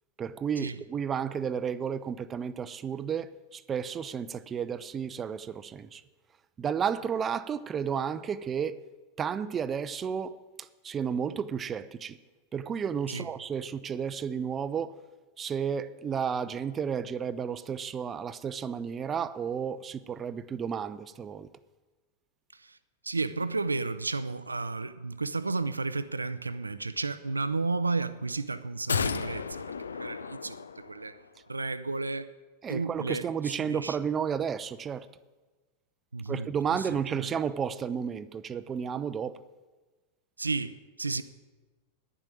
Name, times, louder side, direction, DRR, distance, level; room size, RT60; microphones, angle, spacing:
voice 1, 0.2-6.0 6.6-8.8 9.2-12.2 12.5-15.0 15.4-21.5 32.6-35.1 36.3-39.4, right 7 dB, 25° right, 0.5 m, -32 dB
voice 2, 23.0-29.6 29.9-31.2 31.5-32.3 32.7-34.0 36.1-36.5 36.7-37.3 40.4-41.2, right 3 dB, 80° right, 0.5 m, -33 dB
sound 1, 28.9-31.2 31.5-31.6, left 5 dB, 70° left, 0.4 m, -33 dB
10.5 x 7.4 x 8.6 m
figure-of-eight pair, 90°, 0 cm